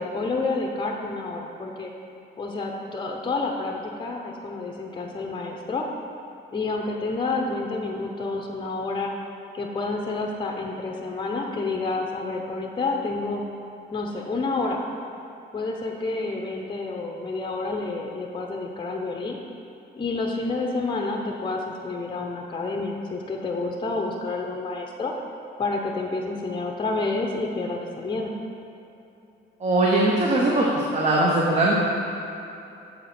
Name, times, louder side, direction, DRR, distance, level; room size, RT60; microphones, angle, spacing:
voice 1, 0.0-1.9 2.4-5.9 6.5-9.1 9.5-13.4 13.9-14.8 15.5-19.4 20.0-25.1 25.6-28.3, left 3 dB, 25° left, 1 dB, 0.7 m, -29 dB
voice 2, 29.6-31.7, right 2 dB, 35° right, -4 dB, 0.9 m, -21 dB
7.4 x 4.2 x 4.2 m, 2.8 s
cardioid pair, 90°, 20 cm